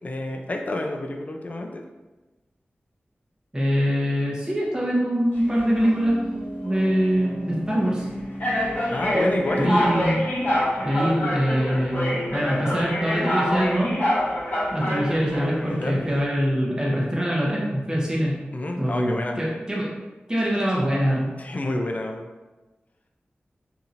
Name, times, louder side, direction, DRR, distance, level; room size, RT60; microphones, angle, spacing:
voice 1, 0.0-1.8 8.9-9.7 15.6-16.0 18.5-19.5 21.4-22.3, left 1 dB, 40° left, 2 dB, 0.4 m, -28 dB
voice 2, 3.5-6.2 6.6-8.1 9.6-10.3 10.8-13.9 14.7-18.3 18.8-19.9 20.3-21.3, equal, 20° right, -4 dB, 0.8 m, -23 dB
sound 1, 5.4-5.9 6.7-6.9 7.7-7.8 8.4-15.7, equal, 60° left, 0.9 m, -26 dB
Piano, 5.9-15.9 16.2-16.3, equal, 60° right, 0.5 m, -39 dB
2.8 x 2.7 x 2.5 m, 1.2 s
wide cardioid pair, 65°, 4 cm